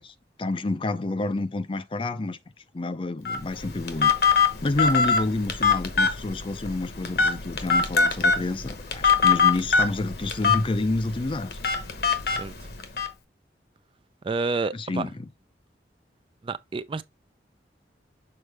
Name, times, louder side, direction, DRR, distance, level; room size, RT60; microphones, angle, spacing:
voice 1, 0.0-2.4 2.7-4.3 4.6-11.6 14.7-15.3, left 2 dB, 30° left, 0.5 m, -29 dB
Telephone, 3.2-13.1, left 5 dB, 60° left, 1.1 m, -23 dB
voice 2, 14.2-15.1 16.4-17.0, right 3 dB, 30° right, 0.4 m, -29 dB
6.6 x 4.3 x 3.3 m
head